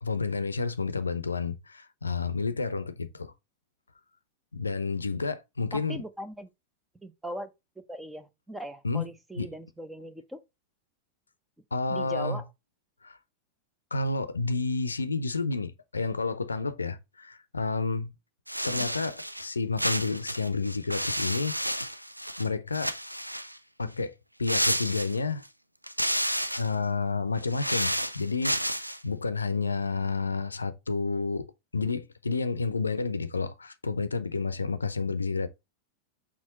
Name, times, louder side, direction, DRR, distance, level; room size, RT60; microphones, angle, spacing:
voice 1, 0.0-3.3 4.5-6.0 8.8-9.1 9.4-9.5 11.7-12.4 13.0-13.2 13.9-18.1 18.6-21.6 22.4-23.0 23.8-24.1 24.4-25.4 26.6-31.5 31.7-35.5, left 4 dB, 80° left, 0.6 m, -30 dB
voice 2, 5.7-6.5 7.0-7.5 7.9-10.4 11.9-12.4, equal, 5° right, 0.7 m, -39 dB
sound 1, 18.5-19.5 19.8-22.5 22.7-23.6 24.4-25.5 25.8-26.7 27.4-29.0, equal, 90° right, 0.4 m, -31 dB
6.2 x 4.2 x 4.0 m
figure-of-eight pair, 90°, 0 cm